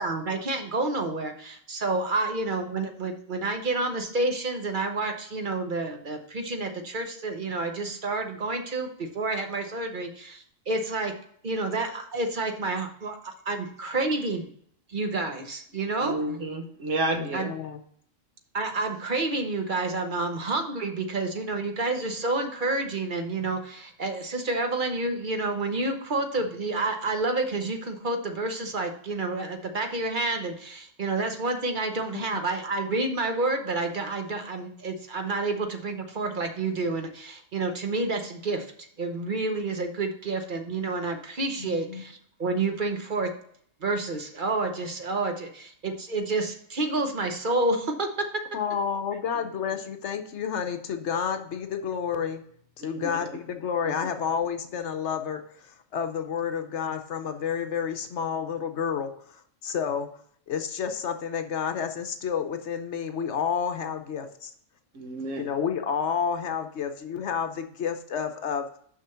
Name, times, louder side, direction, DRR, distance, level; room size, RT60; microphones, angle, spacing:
voice 1, 0.0-11.1 11.4-14.5 14.9-16.2 17.3-17.5 18.5-43.3 43.8-45.5 45.8-48.4, right 3 dB, 45° right, 5 dB, 1.0 m, -29 dB
voice 2, 16.0-17.4 52.8-53.1 53.8-53.9 64.9-65.5, right 2 dB, 70° right, 5 dB, 1.4 m, -30 dB
voice 3, 17.2-17.8 32.1-32.2 41.6-42.0 48.5-52.4 52.8-60.1 60.5-64.5 65.4-68.7, left 7 dB, 65° left, 7 dB, 1.0 m, -30 dB
6.4 x 5.6 x 5.6 m, 0.63 s
omnidirectional pair, 1.3 m